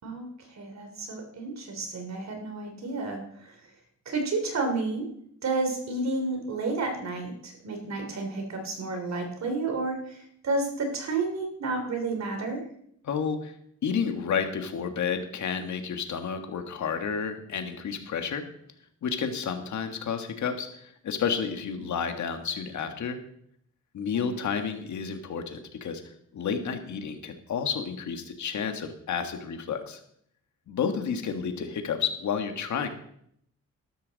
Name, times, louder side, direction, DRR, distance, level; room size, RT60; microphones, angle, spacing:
voice 1, 0.0-3.6 4.0-5.1 5.4-12.6 24.1-24.4, right 3 dB, 60° right, 5 dB, 3.1 m, -31 dB
voice 2, 13.0-13.5 13.8-18.4 19.0-23.2 23.9-26.0 26.3-30.0 30.7-32.9, left 6 dB, 65° left, 6 dB, 1.7 m, -31 dB
13.0 x 12.0 x 4.1 m, 0.70 s
cardioid pair, 115°, 31 cm